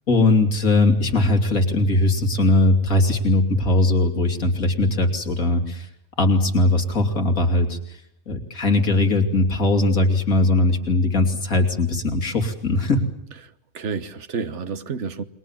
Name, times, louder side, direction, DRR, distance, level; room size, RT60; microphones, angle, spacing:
voice 1, 0.1-5.9 6.2-7.8 8.3-13.0, left 2 dB, 85° left, 3.4 m, -19 dB
voice 2, 13.4-15.2, right 5 dB, 55° right, 1.5 m, -30 dB
29.5 x 22.5 x 7.4 m
omnidirectional pair, 1.4 m